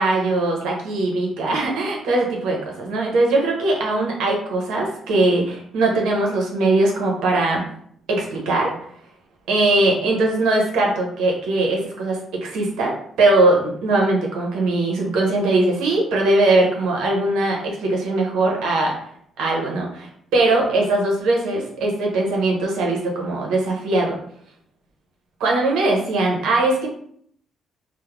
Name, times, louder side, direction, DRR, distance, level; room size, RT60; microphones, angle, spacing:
voice 1, 0.0-7.6 8.1-8.7 9.5-18.9 19.4-24.2 25.4-26.9, right 2 dB, 90° right, -1 dB, 0.7 m, -20 dB
2.3 x 2.0 x 3.1 m, 0.64 s
cardioid pair, 90°, 0 cm